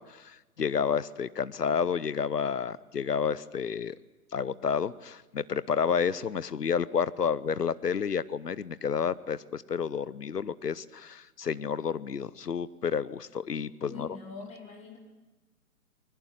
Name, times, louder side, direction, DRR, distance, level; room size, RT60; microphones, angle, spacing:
voice 1, 0.0-4.0 4.3-14.1, left 6 dB, 90° left, 19 dB, 0.9 m, -30 dB
voice 2, 13.8-15.0, left 4 dB, 15° left, 2 dB, 2.7 m, -43 dB
21.5 x 20.0 x 9.1 m, 1.1 s
figure-of-eight pair, 135°, 46 cm